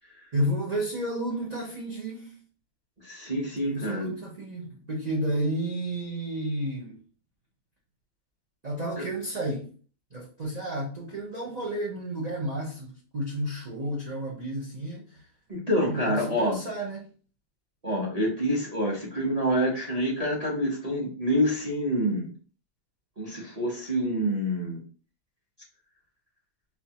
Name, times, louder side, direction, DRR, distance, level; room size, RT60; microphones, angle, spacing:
voice 1, 0.3-2.4 3.6-7.0 8.6-9.7 10.1-15.2 15.9-17.1, right 1 dB, 80° right, 0.3 m, -31 dB
voice 2, 3.0-4.1 9.0-9.1 15.5-16.6 17.8-22.3 23.2-24.8, equal, 35° right, 0.7 m, -27 dB
4.3 x 2.3 x 2.8 m
omnidirectional pair, 1.7 m